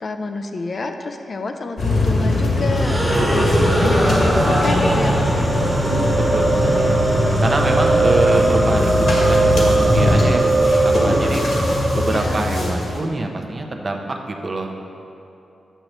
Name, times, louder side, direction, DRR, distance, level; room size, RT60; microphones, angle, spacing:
voice 1, 0.0-5.5 12.1-12.5, left 3 dB, 50° left, 6 dB, 0.4 m, -28 dB
sound 1, 1.8-13.0, left 1 dB, 70° left, 1.6 m, -20 dB
sound 2, 2.7-12.9, equal, 5° right, 0.8 m, -23 dB
voice 2, 3.3-4.1 6.3-6.8 7.4-11.5 11.9-14.7, right 2 dB, 35° right, 2 dB, 0.7 m, -25 dB
sound 3, 5.5-11.6, right 3 dB, 70° right, 0.9 m, -21 dB
8.9 x 3.0 x 6.5 m, 2.7 s
cardioid pair, 95°, 0 cm